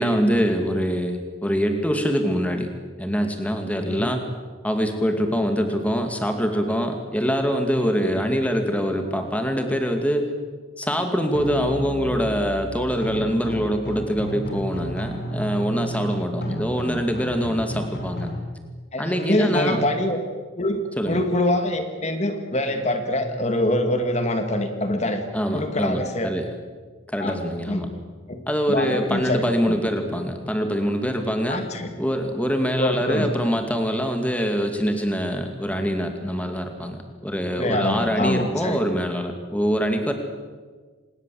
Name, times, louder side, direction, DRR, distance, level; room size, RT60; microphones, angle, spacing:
voice 1, 0.0-2.7 3.0-4.3 4.6-10.3 10.8-18.3 19.0-19.8 21.0-21.2 25.3-26.5 27.1-27.9 28.5-31.6 32.0-40.1, equal, 5° left, 5 dB, 2.3 m, -24 dB
sound 1, 11.3-18.3, equal, 55° left, 5.6 m, -32 dB
voice 2, 18.9-20.2 20.6-25.2 25.5-26.3 27.2-27.9 28.3-28.4 28.7-29.8 31.5-31.9 32.8-33.3 37.5-38.8, left 1 dB, 35° left, 7 dB, 2.3 m, -25 dB
26.0 x 20.5 x 7.8 m, 1.4 s
head